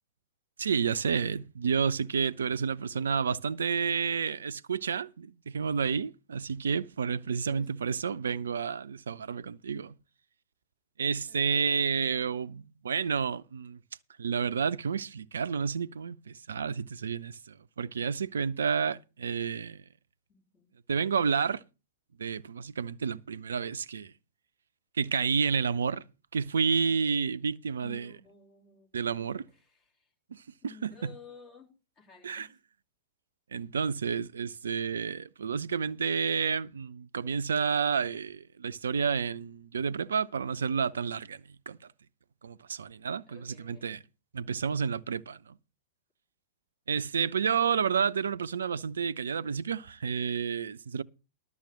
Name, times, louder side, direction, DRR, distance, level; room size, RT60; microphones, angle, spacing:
voice 1, 0.6-9.9 11.0-13.8 14.2-19.8 20.9-21.6 22.2-24.1 24.9-26.0 26.3-28.0 28.9-29.4 30.3-30.4 30.8-30.9 32.2-32.5 33.5-41.8 42.4-43.4 43.6-44.0 44.3-45.6 46.9-51.0, right 6 dB, 70° right, 0.5 m, -30 dB
voice 2, 7.2-7.7 11.3-12.4 20.3-20.7 27.8-30.1 30.6-32.5 43.3-43.9, left 5 dB, 30° left, 3.8 m, -54 dB
12.0 x 6.9 x 6.4 m
figure-of-eight pair, 105°, 0 cm